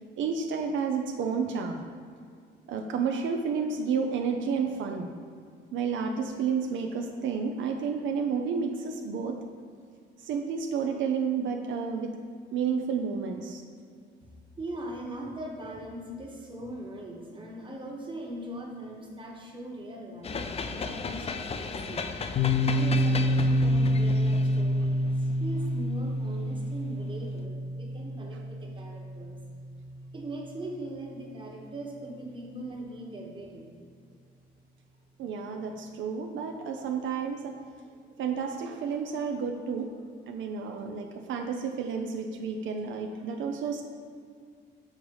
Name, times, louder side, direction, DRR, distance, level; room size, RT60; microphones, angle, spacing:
voice 1, 0.2-1.8 2.7-5.1 5.7-9.4 10.2-12.2 12.5-13.6 35.2-37.6 38.2-39.9 40.3-43.8, right 6 dB, 75° right, 3 dB, 0.5 m, -31 dB
voice 2, 14.6-22.0 22.7-29.4 30.1-33.7, right 1 dB, 25° right, 0 dB, 1.2 m, -40 dB
sound 1, 20.2-26.6, left 4 dB, 30° left, 0.4 m, -36 dB
Piano, 22.4-29.8, equal, 50° left, 0.8 m, -27 dB
6.5 x 4.0 x 4.7 m, 2.2 s
cardioid pair, 90°, 20 cm